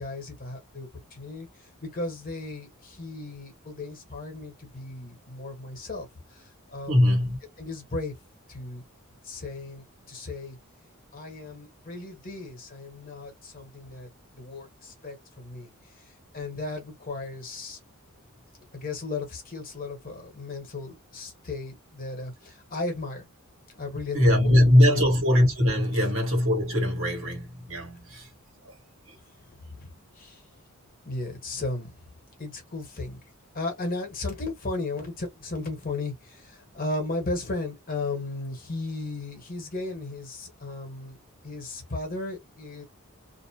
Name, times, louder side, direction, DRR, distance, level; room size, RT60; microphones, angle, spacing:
voice 1, 0.0-7.2 7.6-8.1 8.5-8.8 9.2-10.6 11.1-14.1 14.3-15.7 15.9-16.0 16.3-17.8 18.7-23.2 23.8-25.0 29.6-30.4 31.0-31.9 32.4-33.2 33.5-41.2 41.4-42.8, left 2 dB, 40° left, 1.1 m, -35 dB
voice 2, 6.9-7.4 24.1-28.3 28.7-28.8, left 1 dB, 60° right, 1.4 m, -21 dB
2.6 x 2.0 x 2.8 m
head